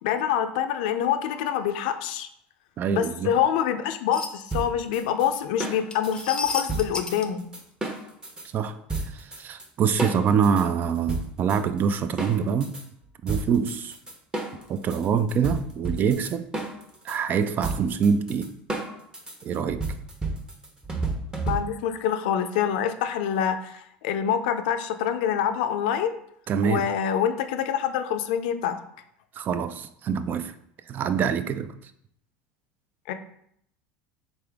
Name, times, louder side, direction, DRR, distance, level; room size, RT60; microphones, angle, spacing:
voice 1, 0.0-2.3 2.9-7.4 21.5-26.2 26.6-28.8 33.1-33.2, left 9 dB, 75° left, 0.4 m, -26 dB
voice 2, 2.8-3.3 8.5-8.8 9.0-12.8 13.2-14.0 14.7-16.5 17.0-18.5 19.4-19.9 26.5-26.9 29.3-30.5 30.9-31.7, right 6 dB, 40° right, 0.4 m, -25 dB
sound 1, 4.1-4.3 5.9-7.3, left 3 dB, 20° left, 0.5 m, -32 dB
sound 2, 4.5-8.5 8.9-9.7 10.0-12.8 13.3-21.9, right 3 dB, 15° right, 0.9 m, -32 dB
3.9 x 3.3 x 3.5 m
hypercardioid pair, 95°, 5 cm